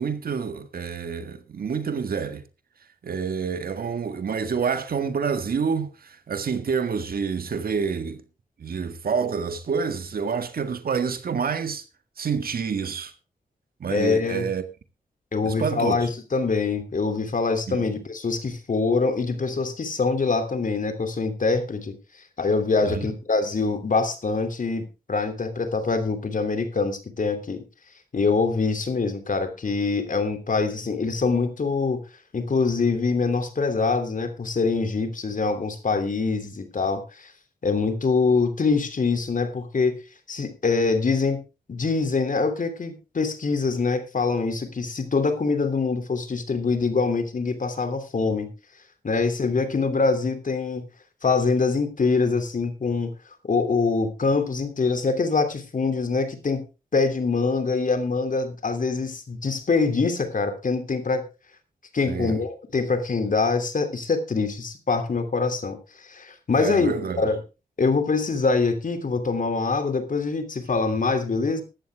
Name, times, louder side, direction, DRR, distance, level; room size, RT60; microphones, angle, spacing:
voice 1, 0.0-2.4 3.0-8.2 8.6-11.8 12.2-13.1 13.8-14.6 15.4-16.0 17.7-17.9 22.8-23.1 62.1-62.4 66.6-67.3, right 6 dB, 70° right, 1.8 m, -28 dB
voice 2, 13.9-14.5 15.3-22.0 22.4-27.6 28.1-32.0 32.3-37.3 37.6-40.0 40.3-41.4 41.7-48.5 49.0-50.9 51.2-53.1 53.4-61.3 61.9-67.4 67.8-71.6, left 4 dB, 55° left, 3.0 m, -24 dB
15.0 x 11.5 x 3.5 m
cardioid pair, 50°, 16 cm